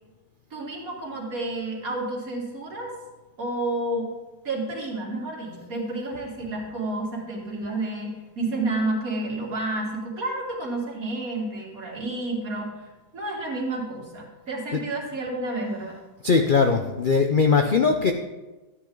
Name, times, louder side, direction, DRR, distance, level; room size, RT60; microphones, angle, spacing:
voice 1, 0.5-2.9 3.4-4.1 4.4-15.9, right 2 dB, 55° right, -2 dB, 2.8 m, -30 dB
voice 2, 16.2-18.1, left 5 dB, 85° left, 5 dB, 0.4 m, -20 dB
13.0 x 9.7 x 3.9 m, 1.1 s
omnidirectional pair, 1.8 m